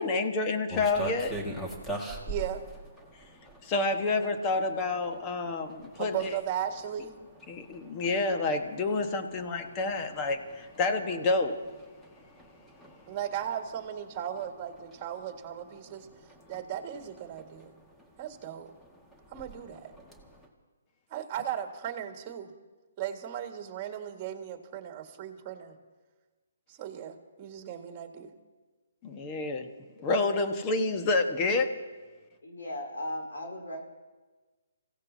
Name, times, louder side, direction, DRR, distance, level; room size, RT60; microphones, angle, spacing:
voice 1, 0.0-1.3 3.6-6.3 7.5-11.6 29.0-29.7 30.0-31.8, left 3 dB, 25° left, 5 dB, 1.4 m, -28 dB
sound 1, 0.7-20.5, right 1 dB, 5° left, 1.8 m, -45 dB
voice 2, 2.3-2.6 6.0-7.1 13.1-16.1 16.5-17.7 18.2-18.7 19.3-19.9 21.1-22.5 23.0-25.7 26.7-28.3, right 10 dB, 30° right, 4 dB, 1.8 m, -36 dB
voice 3, 32.4-33.8, left 1 dB, 80° left, 0 dB, 4.1 m, -37 dB
29.0 x 16.0 x 2.8 m, 1.3 s
hypercardioid pair, 145°, 0 cm